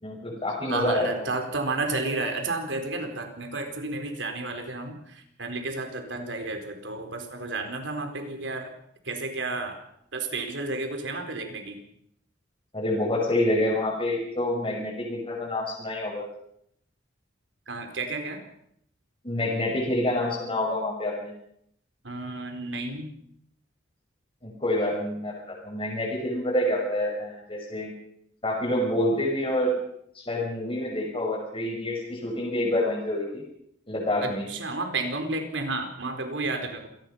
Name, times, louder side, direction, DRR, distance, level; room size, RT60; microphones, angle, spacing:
voice 1, 0.0-1.3 12.7-16.3 19.2-21.3 24.4-27.9 28.4-29.7 30.1-33.4 33.9-34.5, left 1 dB, 30° left, -4 dB, 6.0 m, -27 dB
voice 2, 0.7-8.7 9.0-9.8 10.1-11.8 17.7-18.4 22.0-23.1 34.2-36.9, right 3 dB, 70° right, 5 dB, 4.4 m, -32 dB
27.0 x 19.0 x 5.7 m, 0.72 s
head